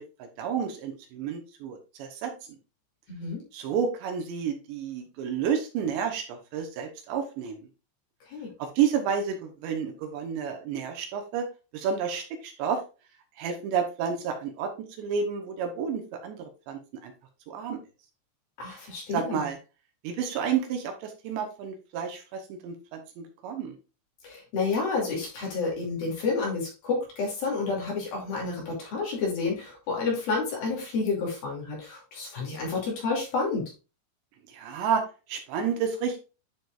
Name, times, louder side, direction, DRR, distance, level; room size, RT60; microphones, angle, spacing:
voice 1, 0.0-2.3 3.5-7.6 8.6-11.5 11.7-12.8 13.4-17.1 17.5-17.8 19.1-19.6 20.0-23.8 34.5-35.0 35.3-36.2, right 7 dB, 75° right, 4 dB, 3.1 m, -30 dB
voice 2, 3.1-3.4 8.3-8.5 18.6-19.5 24.2-33.7, left 4 dB, 55° left, -2 dB, 4.1 m, -30 dB
11.0 x 5.1 x 2.4 m, 0.32 s
omnidirectional pair, 5.4 m